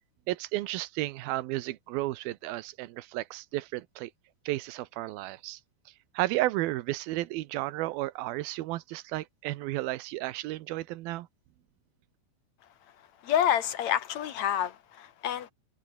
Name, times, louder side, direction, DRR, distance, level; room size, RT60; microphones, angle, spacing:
voice 1, 0.3-4.1 4.5-5.6 5.9-11.3, right 17 dB, 75° right, 2.7 m, -33 dB
voice 2, 13.2-15.5, left 10 dB, 60° left, 2.2 m, -28 dB
omnidirectional pair, 4.4 m